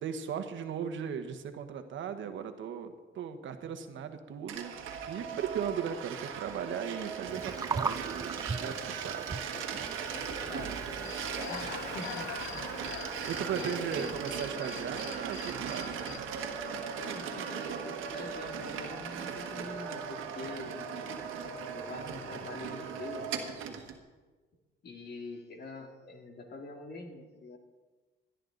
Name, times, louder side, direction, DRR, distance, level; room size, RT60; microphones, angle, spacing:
voice 1, 0.0-4.7 5.1-8.3 8.6-9.4 13.3-16.0, right 7 dB, 75° right, 8 dB, 1.3 m, -37 dB
sound 1, 4.5-24.0, right 7 dB, 90° right, 1.5 m, -38 dB
Gurgling, 7.3-14.5, right 4 dB, 20° right, 0.4 m, -41 dB
voice 2, 10.1-12.9 13.5-14.2 17.0-20.9 21.7-23.3 24.8-27.6, left 2 dB, 55° left, 2 dB, 2.4 m, -45 dB
Human voice / Cricket, 11.0-16.2, left 12 dB, 75° left, 0.5 m, -44 dB
18.0 x 11.0 x 3.9 m, 1.3 s
cardioid pair, 90°, 20 cm